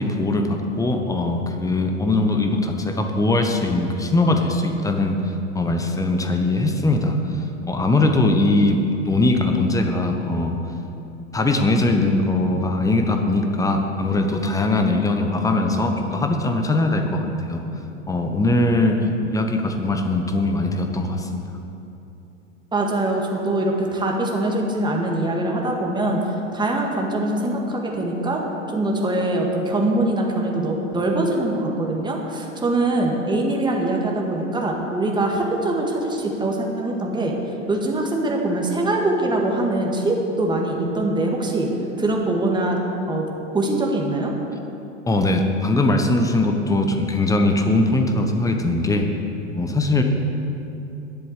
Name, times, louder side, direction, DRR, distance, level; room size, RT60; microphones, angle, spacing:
voice 1, 0.0-5.2 5.5-7.2 7.7-10.6 11.3-17.6 18.1-19.0 19.3-21.3 45.1-49.1 49.5-50.0, left 2 dB, 10° left, 4 dB, 1.1 m, -21 dB
voice 2, 22.7-28.4 28.7-37.4 37.7-41.7 42.0-42.8 43.1-43.3 43.5-44.3, right 2 dB, 10° right, 0 dB, 1.8 m, -23 dB
10.5 x 7.7 x 8.2 m, 2.9 s
hypercardioid pair, 100°, 38 cm